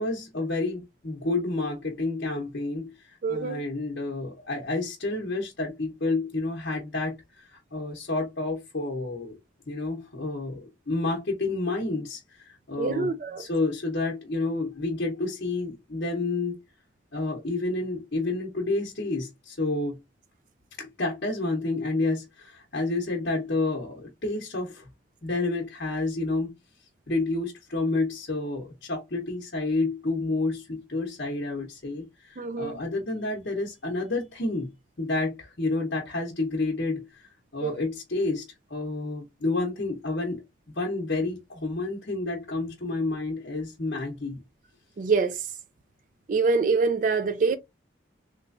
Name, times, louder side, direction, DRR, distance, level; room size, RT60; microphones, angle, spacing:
voice 1, 0.0-9.4 9.7-16.6 17.1-20.0 20.8-24.9 25.2-26.5 27.1-34.7 35.0-38.4 38.7-40.4 40.7-44.4, left 2 dB, 60° left, 0.8 m, -30 dB
voice 2, 3.2-3.6 12.8-13.5 32.4-32.8 37.6-37.8 45.0-45.5 46.3-47.6, right 4 dB, 45° right, 0.3 m, -25 dB
3.3 x 3.0 x 2.5 m
head